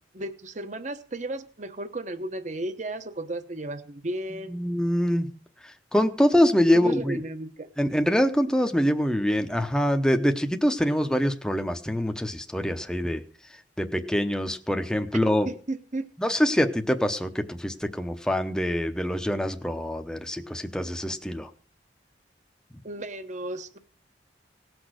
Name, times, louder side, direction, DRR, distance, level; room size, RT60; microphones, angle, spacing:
voice 1, 0.1-4.5 6.7-7.7 15.5-16.1 22.8-23.8, right 2 dB, 40° right, 10 dB, 1.0 m, -34 dB
voice 2, 4.5-5.3 5.6-7.2 7.8-13.2 13.8-15.5 16.2-21.5, equal, 5° left, 6 dB, 0.8 m, -24 dB
18.0 x 6.2 x 6.4 m, 0.43 s
head